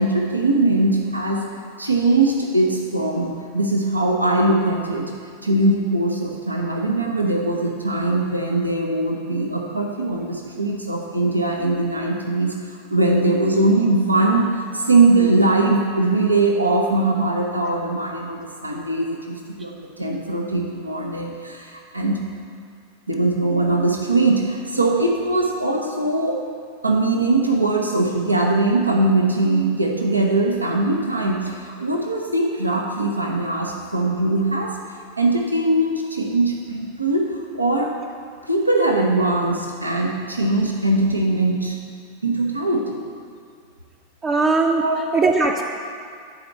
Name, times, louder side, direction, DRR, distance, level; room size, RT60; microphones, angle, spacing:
voice 1, 0.0-1.4 1.8-5.1 5.4-22.2 23.1-26.4 26.8-34.8 35.2-37.9 38.4-41.8 42.2-43.0 44.8-45.0, right 2 dB, 85° right, 1 dB, 0.8 m, -21 dB
voice 2, 44.2-44.8 45.1-45.6, right 3 dB, 25° right, 1 dB, 0.6 m, -18 dB
9.7 x 4.3 x 6.8 m, 2.2 s
figure-of-eight pair, 90°, 0 cm